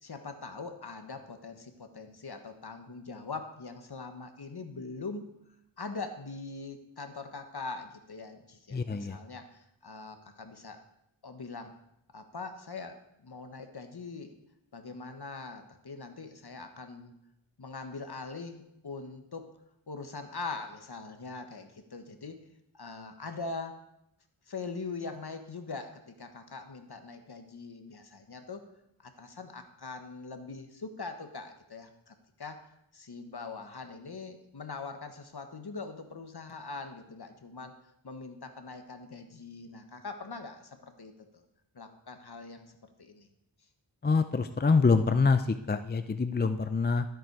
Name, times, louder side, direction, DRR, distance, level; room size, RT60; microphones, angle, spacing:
voice 1, 0.0-5.3 5.8-10.8 11.2-11.7 12.1-14.3 14.7-17.1 17.6-19.5 19.9-22.5 22.7-23.8 24.5-28.7 29.0-37.8 38.0-41.4 41.7-43.3, left 4 dB, 50° left, 7 dB, 1.4 m, -42 dB
voice 2, 8.7-9.2 44.0-47.1, left 4 dB, 20° left, 9 dB, 0.5 m, -25 dB
13.0 x 7.8 x 4.7 m, 0.82 s
wide cardioid pair, 60°, 49 cm